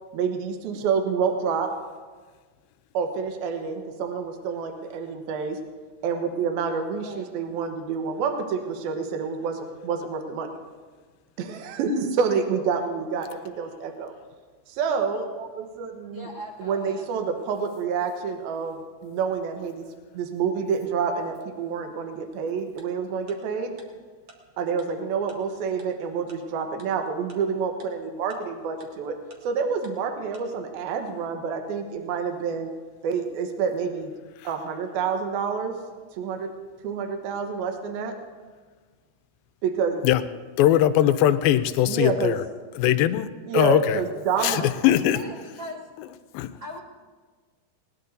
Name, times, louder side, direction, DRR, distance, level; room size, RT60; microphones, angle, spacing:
voice 1, 0.1-1.7 2.9-5.6 6.0-10.5 11.4-14.1 14.7-16.3 16.6-19.8 20.1-23.8 24.6-29.2 29.4-32.7 33.0-34.1 34.4-35.7 36.2-36.5 36.8-38.1 39.6-40.0 41.9-42.3 43.5-44.7, right 6 dB, 75° right, 5 dB, 2.9 m, -28 dB
voice 2, 16.1-17.1 44.4-45.8 46.6-46.8, equal, 30° right, -1 dB, 1.7 m, -39 dB
Tick-tock, 22.8-22.9 23.3-23.4 23.8-23.9 24.3-24.4 24.8-24.9 25.3-25.4 25.8-25.9 26.3-26.4 26.8-26.9 27.3-27.4 27.8-27.9 28.3-28.4 28.8-28.9 29.3-29.4 29.8-29.9 30.3-30.4, right 4 dB, 55° right, 2.2 m, -48 dB
voice 3, 40.6-42.4 42.8-44.0 44.4-45.2 46.3-46.5, left 12 dB, 80° left, 11 dB, 2.2 m, -21 dB
20.0 x 19.5 x 2.7 m, 1.5 s
omnidirectional pair, 4.6 m